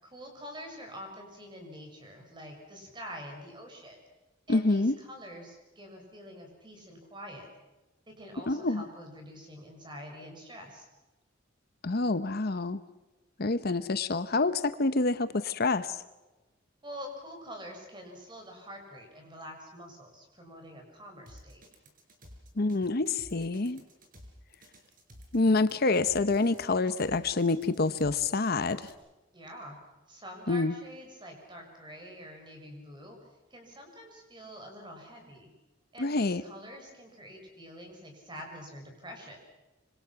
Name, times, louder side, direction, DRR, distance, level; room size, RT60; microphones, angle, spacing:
voice 1, 0.0-4.0 4.5-7.5 8.1-10.9 16.8-21.6 29.3-29.8 30.1-33.2 33.5-35.5 35.9-39.4, equal, 25° right, 3 dB, 6.6 m, -46 dB
voice 2, 4.5-4.9 8.5-8.8 11.8-12.8 13.4-16.0 22.6-23.8 25.3-28.9 30.5-30.7 36.0-36.4, left 3 dB, 55° left, 12 dB, 0.9 m, -27 dB
sound 1, 21.3-28.9, equal, 45° right, 5.2 m, -53 dB
26.0 x 25.5 x 5.9 m, 1.1 s
head